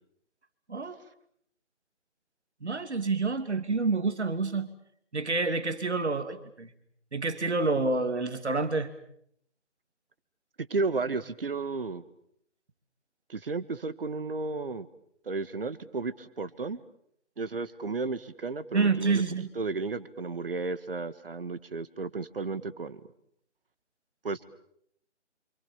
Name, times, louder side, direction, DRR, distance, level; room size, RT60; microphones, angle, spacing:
voice 1, 2.6-4.7 5.1-6.7 7.1-8.9 18.7-19.5, right 3 dB, 65° right, 10 dB, 2.9 m, -28 dB
voice 2, 10.6-12.0 13.3-14.9 15.3-16.8 17.4-19.2 19.6-23.0 24.2-24.4, right 3 dB, 50° right, 16 dB, 1.9 m, -33 dB
28.5 x 27.0 x 7.4 m, 0.70 s
figure-of-eight pair, 155°, 36 cm